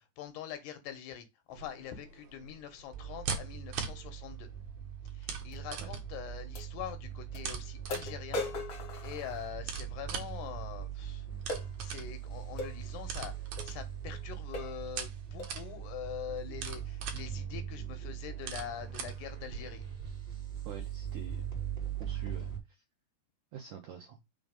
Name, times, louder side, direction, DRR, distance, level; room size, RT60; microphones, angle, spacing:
voice 1, 0.0-4.5 5.1-11.3 11.8-13.3 13.6-19.8, left 10 dB, 80° left, 3.1 m, -44 dB
sound 1, 1.5-20.1, right 6 dB, 60° right, 2.1 m, -44 dB
sound 2, 2.9-22.6, right 9 dB, 15° right, 1.8 m, -41 dB
sound 3, 5.5-5.6 6.5-6.7 7.3-7.4 7.9-9.9 11.5-11.7 12.6-12.8 13.6-13.7 14.1-14.2 14.5-14.8 15.4-15.6, left 2 dB, 60° left, 1.3 m, -39 dB
voice 2, 20.7-21.4 22.0-22.8 23.5-24.2, right 8 dB, 75° right, 1.9 m, -46 dB
6.3 x 3.8 x 5.2 m
omnidirectional pair, 4.8 m